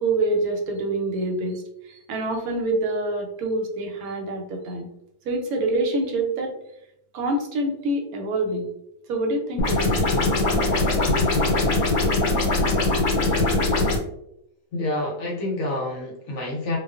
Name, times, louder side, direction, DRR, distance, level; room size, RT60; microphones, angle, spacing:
voice 1, 0.0-4.9 5.3-6.5 7.1-8.7 9.1-10.0, right 2 dB, 85° right, 2 dB, 1.1 m, -26 dB
sound 1, 9.6-14.0, left 2 dB, 85° left, 1.1 m, -21 dB
voice 2, 14.7-16.8, left 2 dB, 65° left, -2 dB, 0.8 m, -28 dB
2.4 x 2.3 x 2.3 m, 0.80 s
omnidirectional pair, 1.5 m